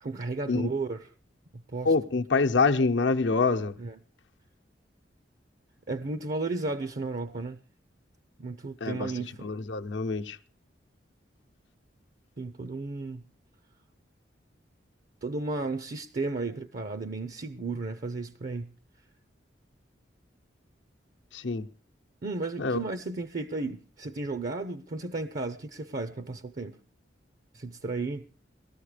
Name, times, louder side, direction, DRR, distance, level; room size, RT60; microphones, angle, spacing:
voice 1, 0.0-1.1 1.5-1.9 3.8-4.0 5.9-7.6 8.4-9.5 12.4-13.3 15.2-18.7 22.2-26.8 27.5-28.3, right 3 dB, 50° right, 0.7 m, -34 dB
voice 2, 1.8-3.7 8.8-9.1 9.4-10.4 21.3-21.7 22.6-22.8, left 4 dB, 80° left, 0.8 m, -26 dB
19.0 x 13.5 x 4.9 m
head